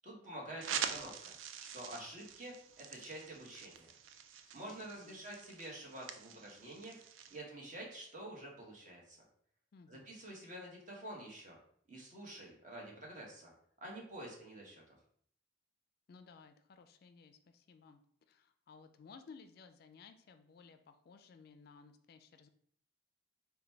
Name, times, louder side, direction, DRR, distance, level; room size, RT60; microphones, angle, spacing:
voice 1, 0.0-3.9 4.5-7.0 7.3-9.3 9.9-11.6 11.9-13.5 13.8-15.0, right 1 dB, 40° right, -1 dB, 1.1 m, -48 dB
sound 1, 0.6-7.4, right 7 dB, 85° right, 0.4 m, -45 dB
voice 2, 4.5-5.2 9.7-10.1 16.1-18.0 18.3-22.5, left 5 dB, 50° left, 8 dB, 0.3 m, -58 dB
3.9 x 2.2 x 4.3 m, 0.62 s
head